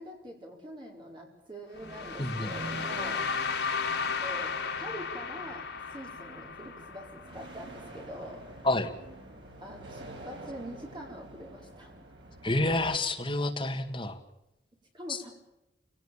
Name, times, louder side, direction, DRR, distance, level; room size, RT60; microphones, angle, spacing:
voice 1, 0.0-3.3 4.2-8.5 9.6-11.9 14.9-15.3, equal, 25° right, 0 dB, 4.8 m, -44 dB
sound 1, 1.7-13.0, right 2 dB, 75° right, 5.9 m, -46 dB
sound 2, 1.8-7.8, left 5 dB, 75° left, 2.9 m, -34 dB
voice 2, 2.2-2.5 8.6-8.9 12.4-14.2, left 2 dB, 25° left, 4 dB, 2.0 m, -28 dB
27.5 x 18.0 x 7.3 m, 0.92 s
head